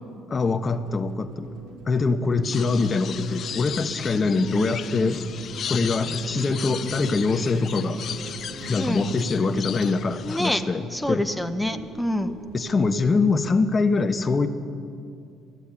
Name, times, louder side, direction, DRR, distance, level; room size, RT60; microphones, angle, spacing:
voice 1, 0.3-1.5 1.9-5.2 5.7-8.0 8.7-11.2 12.5-14.5, left 4 dB, 35° left, 9 dB, 0.9 m, -23 dB
sound 1, 0.6-13.6, right 1 dB, 90° right, 2.5 m, -44 dB
sound 2, 2.4-10.6, left 9 dB, 55° left, 0.4 m, -36 dB
sound 3, 3.2-9.9, right 4 dB, 55° right, 2.5 m, -38 dB
voice 2, 8.8-9.1 10.2-10.7 10.9-12.4, left 1 dB, 5° left, 6 dB, 0.8 m, -26 dB
13.5 x 8.2 x 9.8 m, 2.4 s
hypercardioid pair, 60°, 0 cm